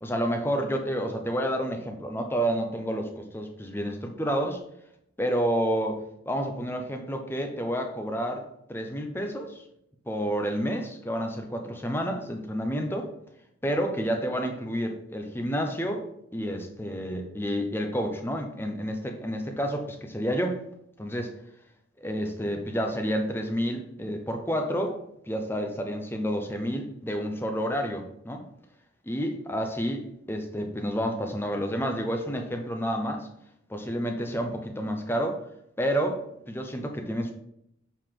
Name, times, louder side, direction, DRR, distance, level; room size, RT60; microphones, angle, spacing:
voice 1, 0.0-4.6 5.2-9.6 10.1-13.1 13.6-16.1 16.3-20.6 21.0-21.3 22.0-25.0 25.2-28.5 29.1-33.3 33.7-35.4 35.8-36.2 36.5-37.3, equal, 10° left, 4 dB, 0.8 m, -29 dB
7.0 x 4.7 x 3.8 m, 0.75 s
head